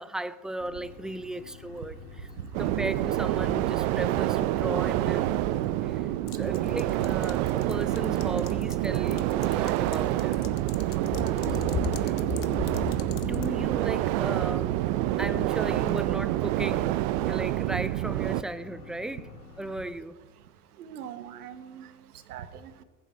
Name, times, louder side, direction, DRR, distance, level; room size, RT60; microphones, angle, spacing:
voice 1, 0.0-2.3 2.6-10.4 11.6-12.2 13.1-14.8 15.2-17.0 17.2-19.3 19.6-20.2, right 1 dB, ahead, 0.4 m, -36 dB
sound 1, 0.6-19.8, left 5 dB, 85° left, 2.0 m, -49 dB
sound 2, 2.5-18.4, right 15 dB, 60° right, 0.7 m, -27 dB
sound 3, 6.3-13.5, left 9 dB, 45° left, 1.4 m, -37 dB
voice 2, 6.3-6.7 11.1-11.4 20.8-21.9 22.3-22.8, right 9 dB, 85° right, 1.3 m, -42 dB
21.5 x 8.4 x 4.5 m
hypercardioid pair, 90°, 44 cm